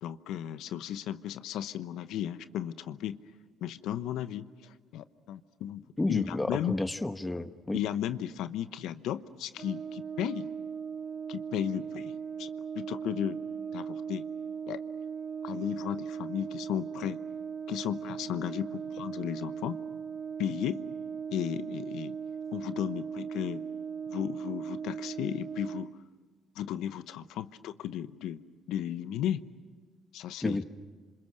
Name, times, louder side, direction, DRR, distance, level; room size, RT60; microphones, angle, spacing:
voice 1, 0.0-3.2 3.6-5.8 6.1-6.7 7.7-10.5 11.3-12.5 12.7-13.4 13.7-14.3 14.7-14.8 15.4-17.2 17.7-19.8 20.4-20.8 21.3-22.2 22.5-23.6 24.1-25.9 26.5-28.4 28.7-29.4 30.1-30.6, left 11 dB, 80° left, 13 dB, 0.9 m, -35 dB
voice 2, 6.0-7.8 30.4-30.6, left 2 dB, 15° left, 9 dB, 1.4 m, -31 dB
Brass instrument, 9.6-26.0, right 7 dB, 50° right, 0.7 m, -38 dB
28.0 x 26.5 x 6.5 m, 1.5 s
supercardioid pair, 75°, 0 cm